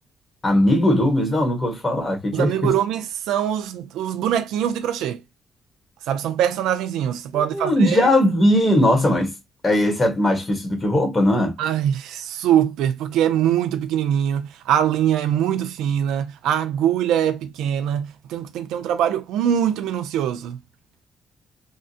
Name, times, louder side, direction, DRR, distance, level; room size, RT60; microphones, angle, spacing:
voice 1, 0.4-2.7 7.3-9.3 9.6-11.5, left 1 dB, 25° left, 1.5 m, -19 dB
voice 2, 2.3-5.2 6.1-8.1 11.6-20.6, right 10 dB, 90° right, 0.4 m, -23 dB
3.6 x 2.1 x 2.7 m
cardioid pair, 90°, 0 cm